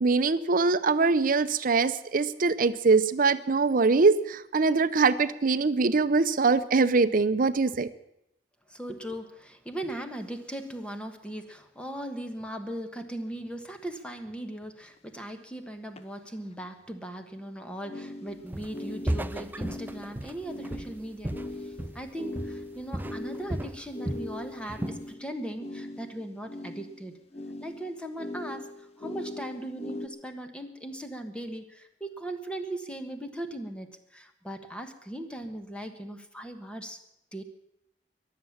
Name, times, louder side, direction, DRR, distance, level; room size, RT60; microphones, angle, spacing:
voice 1, 0.0-7.9, right 4 dB, 50° right, 14 dB, 0.7 m, -23 dB
voice 2, 8.7-27.2 27.6-37.0 37.3-37.4, right 1 dB, 5° left, 6 dB, 1.3 m, -39 dB
sound 1, 15.0-15.1 15.9-16.0 17.8-30.1, left 1 dB, 35° left, 0.9 m, -40 dB
Walk footsteps, 18.5-18.8 19.1-22.1 22.3-22.7 22.9-24.3 24.7-25.0, right 1 dB, 10° right, 0.5 m, -34 dB
22.0 x 7.6 x 7.2 m, 0.81 s
head